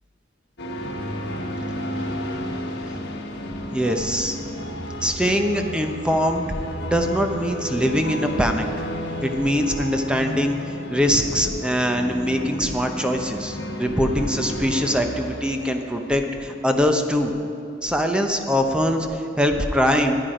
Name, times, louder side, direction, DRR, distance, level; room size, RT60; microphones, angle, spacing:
sound 1, 0.6-17.4, equal, 60° left, 1.5 m, -32 dB
voice 1, 3.7-4.4 5.0-6.5 6.8-8.7 9.2-10.6 10.9-17.3 17.8-20.2, equal, 5° right, 4 dB, 0.8 m, -22 dB
14.5 x 9.7 x 5.0 m, 2.9 s
head